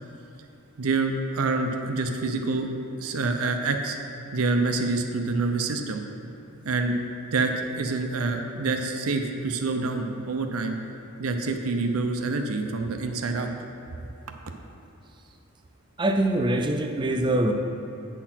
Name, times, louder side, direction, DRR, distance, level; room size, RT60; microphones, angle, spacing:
voice 1, 0.8-2.7 3.0-4.0 4.3-6.0 6.6-7.0 7.3-10.8 11.2-13.5, right 3 dB, 80° right, 4 dB, 0.6 m, -27 dB
voice 2, 16.0-17.5, right 1 dB, 20° right, 5 dB, 0.4 m, -23 dB
9.0 x 4.3 x 5.7 m, 3.0 s
head